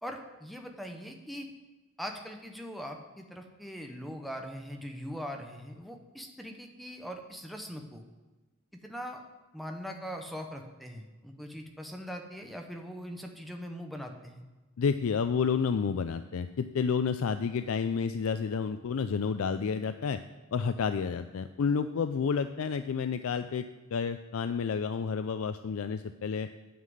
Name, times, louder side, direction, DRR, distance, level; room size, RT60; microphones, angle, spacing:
voice 1, 0.0-1.5 2.0-8.0 8.8-9.2 9.5-14.4, equal, ahead, 3 dB, 0.8 m, -41 dB
voice 2, 14.8-20.2 20.5-23.6 23.9-26.5, left 6 dB, 80° left, 10 dB, 0.4 m, -30 dB
9.4 x 5.7 x 7.7 m, 1.2 s
head